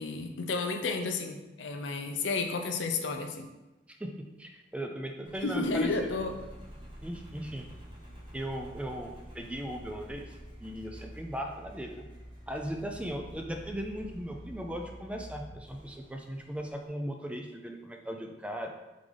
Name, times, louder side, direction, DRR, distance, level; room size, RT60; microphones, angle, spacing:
voice 1, 0.0-3.5 5.4-6.4, left 3 dB, 80° left, 5 dB, 0.5 m, -32 dB
voice 2, 4.0-5.9 7.0-7.7 8.3-10.2 10.6-12.1 12.5-18.7, equal, 5° right, 3 dB, 0.3 m, -38 dB
Engine, 5.2-16.9, equal, 30° right, 1.1 m, -48 dB
3.8 x 3.7 x 3.2 m, 1.0 s
head